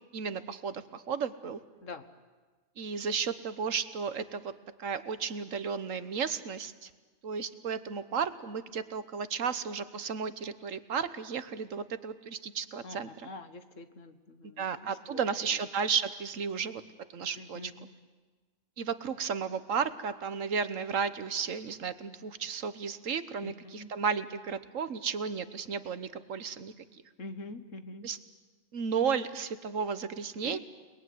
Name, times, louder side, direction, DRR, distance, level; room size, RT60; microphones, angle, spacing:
voice 1, 0.1-1.6 2.8-4.5 4.8-6.9 7.2-13.3 14.6-16.8 17.1-17.7 18.8-26.7 28.0-28.2 28.7-30.6, right 6 dB, 75° right, 12 dB, 1.5 m, -33 dB
voice 2, 12.8-15.3 17.4-17.9 23.4-23.9 27.2-28.1 30.4-30.6, left 3 dB, 70° left, 10 dB, 1.8 m, -45 dB
29.0 x 20.5 x 9.5 m, 1.4 s
omnidirectional pair, 1.4 m